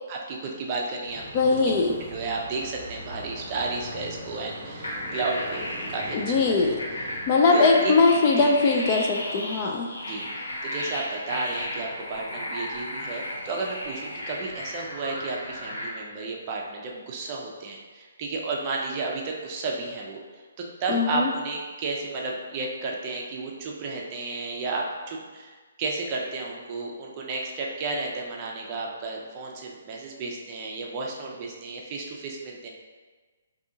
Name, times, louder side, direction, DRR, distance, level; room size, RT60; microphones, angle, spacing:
voice 1, 0.1-1.3 1.6-5.7 5.9-6.8 7.5-7.9 8.4-8.5 10.0-20.2 20.6-32.7, right 3 dB, 25° right, -1 dB, 0.5 m, -32 dB
sound 1, 1.1-7.3, equal, 5° right, 1.0 m, -41 dB
voice 2, 1.3-1.9 6.1-6.8 7.3-9.9 20.9-21.3, left 3 dB, 30° left, 1 dB, 0.3 m, -21 dB
sound 2, 4.8-15.9, left 1 dB, 85° left, 1.5 m, -34 dB
4.7 x 2.7 x 2.7 m, 1.4 s
hypercardioid pair, 165°, 0 cm